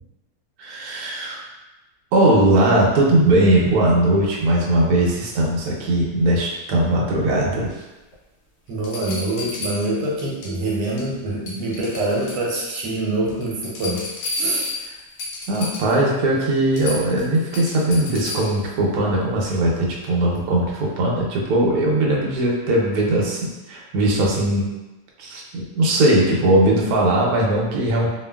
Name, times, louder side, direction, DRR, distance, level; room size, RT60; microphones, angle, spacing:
voice 1, 0.6-1.4 2.1-7.8 15.5-24.7 25.2-28.1, right 1 dB, 70° right, -3 dB, 1.0 m, -19 dB
sound 1, 8.1-8.2 8.8-10.5 10.8-11.2 11.5-12.9 13.3-16.0 16.4-16.5 16.7-18.6 20.3-20.4, left 3 dB, 65° left, 1.2 m, -32 dB
voice 2, 8.7-14.1 14.4-14.7, right 2 dB, 90° right, -3 dB, 1.3 m, -25 dB
2.8 x 2.4 x 2.2 m, 1.1 s
omnidirectional pair, 1.9 m